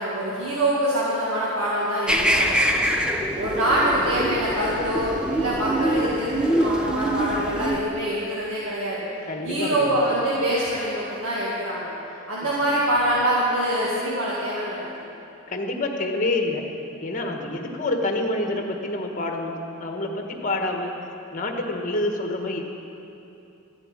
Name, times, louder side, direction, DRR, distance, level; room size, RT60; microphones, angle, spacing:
voice 1, 0.0-2.6 3.4-9.0 9.4-11.9 12.3-14.8, right 1 dB, 80° right, -6 dB, 2.0 m, -24 dB
sound 1, 2.1-7.8, right 1 dB, 5° right, 0.7 m, -24 dB
voice 2, 9.3-10.0 15.4-16.6 17.0-20.9 21.3-22.6, left 2 dB, 40° left, 3 dB, 1.4 m, -27 dB
13.0 x 7.8 x 8.9 m, 2.8 s
head